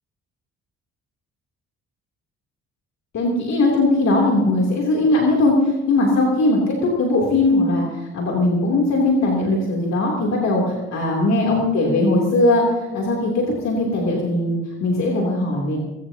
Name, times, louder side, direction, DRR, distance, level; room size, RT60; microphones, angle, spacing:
voice 1, 3.1-15.8, left 2 dB, 60° left, -2 dB, 3.1 m, -19 dB
21.5 x 16.0 x 2.9 m, 1.1 s
cardioid pair, 90°, 30 cm